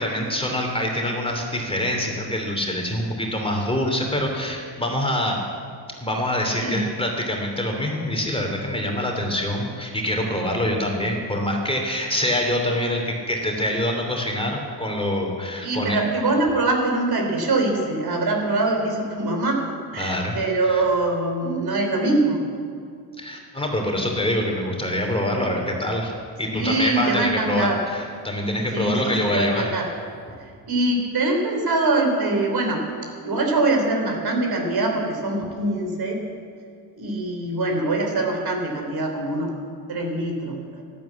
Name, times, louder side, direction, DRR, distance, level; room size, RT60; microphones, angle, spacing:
voice 1, 0.0-5.4 6.0-16.0 20.0-20.3 20.7-20.8 23.2-26.1 26.4-29.7, left 1 dB, 10° left, 1 dB, 3.0 m, -25 dB
voice 2, 15.6-19.6 19.9-22.4 26.5-27.9 28.7-29.9 30.7-32.8 33.2-36.2 37.0-39.5 39.9-40.8, right 2 dB, 50° right, 2 dB, 3.4 m, -23 dB
12.0 x 11.5 x 8.5 m, 2.2 s
cardioid pair, 75°, 47 cm